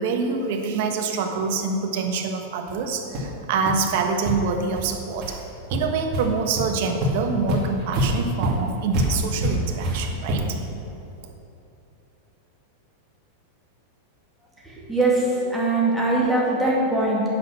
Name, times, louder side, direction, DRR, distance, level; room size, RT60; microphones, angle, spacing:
voice 1, 0.0-5.4 5.7-10.5 11.2-11.3, right 4 dB, 60° right, 4 dB, 1.2 m, -26 dB
sound 1, 2.7-2.8 3.1-3.3 3.7-3.8 4.2-4.3 4.8-4.9 5.2-5.4 5.7-6.2 6.6-6.7 7.0-10.6, right 1 dB, 40° right, 2.5 m, -25 dB
voice 2, 14.9-17.2, right 2 dB, 5° right, -6 dB, 2.3 m, -21 dB
9.2 x 6.3 x 6.5 m, 2.8 s
supercardioid pair, 140°, 0 cm